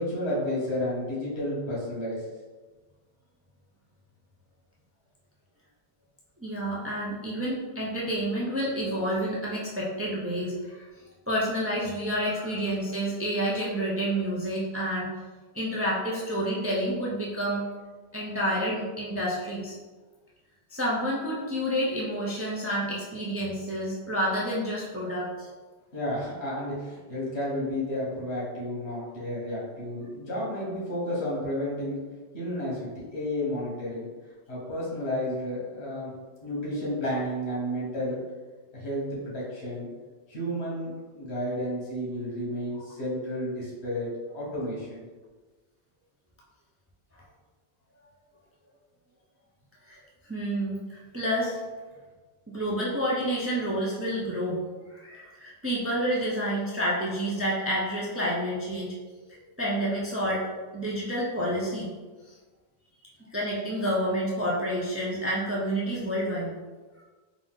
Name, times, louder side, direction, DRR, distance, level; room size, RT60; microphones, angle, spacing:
voice 1, 0.0-2.2 25.9-32.0 32.3-34.1 34.5-36.1 36.4-38.2 38.7-39.9 40.3-44.1 44.3-45.1, left 1 dB, 75° left, -6 dB, 1.7 m, -31 dB
voice 2, 6.4-10.9 11.3-15.1 15.5-17.6 18.1-19.8 20.7-25.5 49.8-50.0 50.3-51.6 52.5-54.6 54.9-58.9 59.3-60.5 60.7-61.9 62.2-62.3 63.3-66.5, equal, 20° right, -5 dB, 0.4 m, -29 dB
3.8 x 2.6 x 3.6 m, 1.3 s
omnidirectional pair, 1.1 m